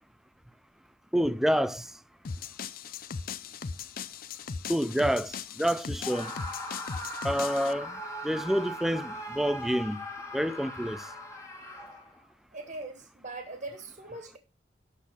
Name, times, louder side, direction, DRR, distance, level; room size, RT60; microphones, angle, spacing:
voice 1, 1.1-1.9 4.7-6.3 7.2-10.0 10.3-11.1, equal, ahead, 0.4 m, -28 dB
sound 1, 2.2-7.7, left 5 dB, 55° left, 0.5 m, -38 dB
Screaming, 6.0-12.2, equal, 20° left, 1.7 m, -39 dB
voice 2, 12.5-14.4, right 2 dB, 45° right, 1.6 m, -41 dB
11.5 x 4.1 x 6.2 m
head